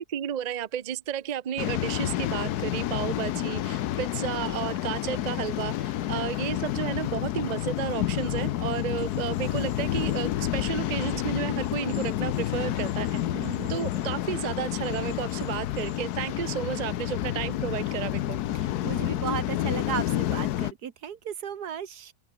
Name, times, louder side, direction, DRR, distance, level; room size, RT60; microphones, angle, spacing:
voice 1, 0.0-18.4, right 9 dB, 55° right, 0.4 m, -32 dB
Waves surf, 1.6-20.7, left 13 dB, 75° left, 1.2 m, -29 dB
sound 1, 7.8-16.2, left 3 dB, 40° left, 3.7 m, -51 dB
voice 2, 13.3-13.8 18.5-22.1, right 8 dB, 80° right, 1.8 m, -35 dB
open air
omnidirectional pair, 1.7 m